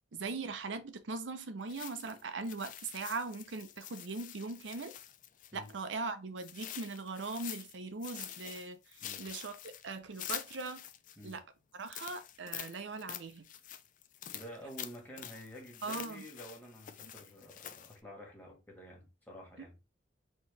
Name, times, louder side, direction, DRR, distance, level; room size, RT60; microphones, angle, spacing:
voice 1, 0.1-4.9 5.5-9.5 9.8-10.8 11.2-11.4 11.8-13.4 15.8-16.2 17.0-17.1, right 3 dB, 75° right, 0.6 m, -40 dB
sound 1, 1.7-5.8 6.4-7.8 8.0-11.3 11.8-18.0, left 11 dB, 45° left, 0.4 m, -46 dB
voice 2, 14.3-19.8, equal, 10° left, 1.5 m, -50 dB
4.2 x 2.9 x 3.2 m
head